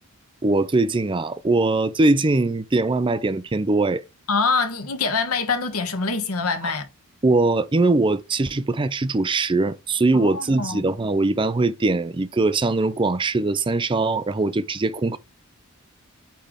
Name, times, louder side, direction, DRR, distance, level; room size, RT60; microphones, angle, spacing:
voice 1, 0.4-4.0 6.6-6.7 7.2-15.2, right 2 dB, 20° right, 0.5 m, -21 dB
voice 2, 4.3-6.9 10.1-10.8, left 4 dB, 85° left, 1.5 m, -24 dB
8.5 x 3.4 x 3.6 m
head